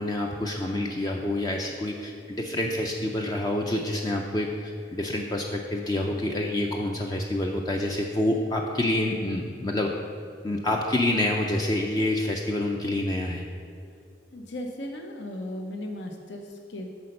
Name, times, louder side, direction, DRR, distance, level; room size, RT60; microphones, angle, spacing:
voice 1, 0.0-9.9 10.4-13.4, left 1 dB, 20° left, 1 dB, 0.4 m, -27 dB
voice 2, 14.3-16.9, left 1 dB, 80° left, 3 dB, 0.7 m, -36 dB
8.1 x 4.3 x 6.5 m, 2.5 s
head